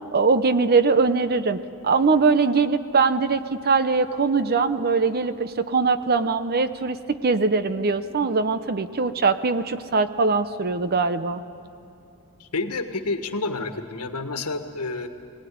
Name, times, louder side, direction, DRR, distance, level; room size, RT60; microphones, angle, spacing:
voice 1, 0.1-11.4, right 4 dB, 45° right, 12 dB, 0.8 m, -22 dB
voice 2, 12.4-15.1, left 3 dB, 85° left, 7 dB, 1.5 m, -29 dB
22.5 x 18.0 x 9.4 m, 2.7 s
head